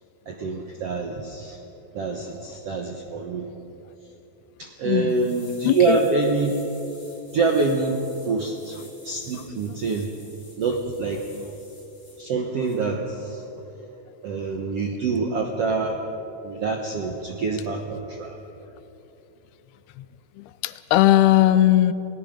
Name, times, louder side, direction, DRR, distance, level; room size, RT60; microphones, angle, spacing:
voice 1, 0.3-1.6 1.9-3.5 4.6-6.6 7.3-10.1 10.6-11.2 12.2-13.4 14.2-16.0 16.4-18.4, right 4 dB, 70° right, 2 dB, 1.4 m, -26 dB
voice 2, 4.9-5.2 5.6-6.0 9.3-9.4 20.0-20.1 20.4-21.9, left 13 dB, 85° left, 13 dB, 2.6 m, -19 dB
sound 1, 5.1-12.2 12.6-12.8, left 2 dB, 35° left, 6.1 m, -50 dB
29.0 x 18.0 x 5.2 m, 3.0 s
omnidirectional pair, 4.5 m